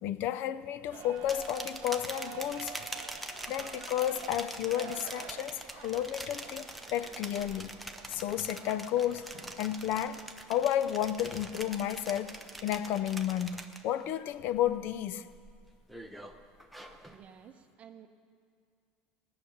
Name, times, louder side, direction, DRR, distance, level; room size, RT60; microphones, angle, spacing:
voice 1, 0.0-2.7 3.5-7.7 8.1-9.3 9.6-10.2 10.5-15.3, left 11 dB, 55° left, 0.5 m, -32 dB
sound 1, 0.9-13.6, right 10 dB, 50° right, 0.6 m, -49 dB
sound 2, 1.2-14.1 14.5-14.9 15.3-17.2, right 1 dB, ahead, 0.7 m, -44 dB
voice 2, 17.1-18.1, right 8 dB, 30° right, 0.9 m, -53 dB
18.5 x 6.7 x 8.6 m
cardioid pair, 145°, 4 cm